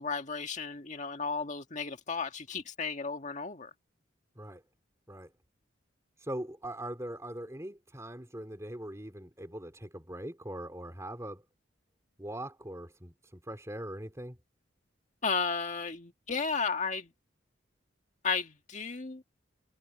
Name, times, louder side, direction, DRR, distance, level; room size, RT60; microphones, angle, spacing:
voice 1, 0.0-3.7 15.2-17.1 18.2-19.2, left 5 dB, 40° left, 1.8 m, -34 dB
voice 2, 6.2-11.4 12.2-14.4, right 1 dB, 15° right, 3.3 m, -41 dB
head